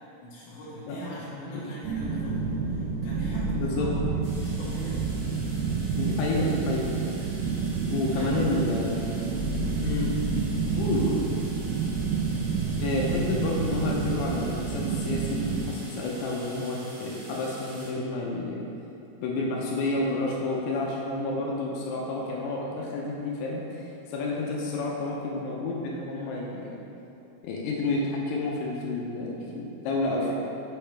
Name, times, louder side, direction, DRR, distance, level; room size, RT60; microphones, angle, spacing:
voice 1, 0.2-4.0 4.4-5.0 8.0-8.4 10.7-11.3, left 1 dB, 60° left, -9 dB, 2.8 m, -40 dB
voice 2, 1.3-1.6 3.5-3.9 5.9-6.9 7.9-9.2 9.8-10.1 10.8-11.2 12.8-18.7 19.2-26.8 27.4-30.4, left 2 dB, 85° left, -3 dB, 2.7 m, -30 dB
sound 1, 1.8-15.6, right 5 dB, 85° right, 2.6 m, -29 dB
sound 2, 4.2-17.9, right 1 dB, 65° right, 1.4 m, -46 dB
6.5 x 5.6 x 3.3 m, 2.9 s
omnidirectional pair, 4.6 m